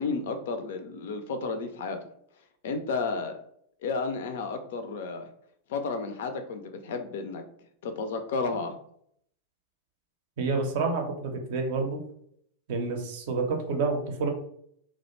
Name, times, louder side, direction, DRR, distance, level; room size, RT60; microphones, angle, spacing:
voice 1, 0.0-2.0 2.6-3.4 3.8-5.3 5.7-7.4 7.8-8.8, left 4 dB, 55° left, 7 dB, 0.3 m, -32 dB
voice 2, 10.4-12.0 12.7-14.3, right 4 dB, 50° right, 3 dB, 0.5 m, -28 dB
2.4 x 2.1 x 2.9 m, 0.68 s
figure-of-eight pair, 90°, 0 cm